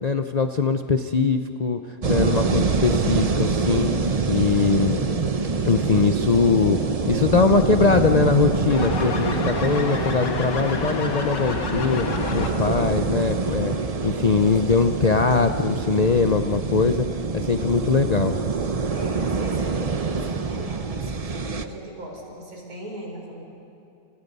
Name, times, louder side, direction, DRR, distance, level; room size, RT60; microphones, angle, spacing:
voice 1, 0.0-1.8 2.1-3.9 4.3-5.0 5.6-6.8 7.1-12.1 12.3-13.8 14.0-17.0 17.3-18.4, left 4 dB, 70° left, 7 dB, 0.3 m, -21 dB
sound 1, 2.0-21.6, right 4 dB, 35° right, 0.6 m, -25 dB
sound 2, 8.7-12.8, left 4 dB, 85° left, 2.5 m, -29 dB
voice 2, 12.7-13.1 15.3-15.4 18.9-23.4, right 1 dB, 55° right, 0 dB, 5.4 m, -38 dB
29.5 x 29.0 x 5.5 m, 2.8 s
omnidirectional pair, 1.8 m